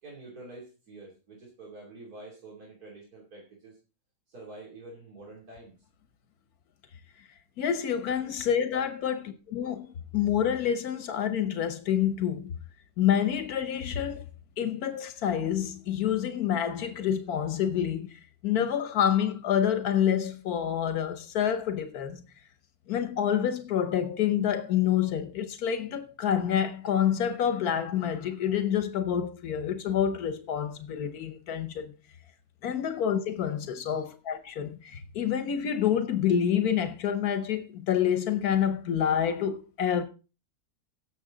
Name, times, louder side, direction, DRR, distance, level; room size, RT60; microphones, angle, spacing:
voice 1, 0.0-3.8 4.3-5.7 7.9-8.0 9.0-9.2, right 2 dB, 80° right, 3.5 m, -47 dB
voice 2, 7.6-9.9 10.1-12.6 13.0-14.2 14.6-22.2 22.9-31.9 32.6-40.0, left 9 dB, 85° left, 1.4 m, -28 dB
17.0 x 7.1 x 3.9 m
omnidirectional pair, 1.6 m